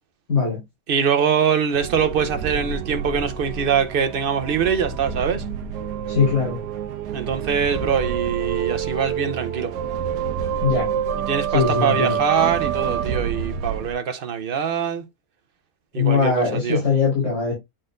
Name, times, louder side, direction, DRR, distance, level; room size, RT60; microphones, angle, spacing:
voice 1, 0.3-0.6 6.1-6.6 10.6-10.9 11.5-12.2 15.9-17.5, left 5 dB, 45° left, 4.0 m, -20 dB
voice 2, 0.9-5.4 7.1-9.7 11.1-15.0 15.9-16.8, right 7 dB, 50° right, 0.7 m, -23 dB
sound 1, 1.7-13.9, right 8 dB, 85° right, 1.2 m, -27 dB
9.0 x 4.2 x 2.5 m
omnidirectional pair, 1.8 m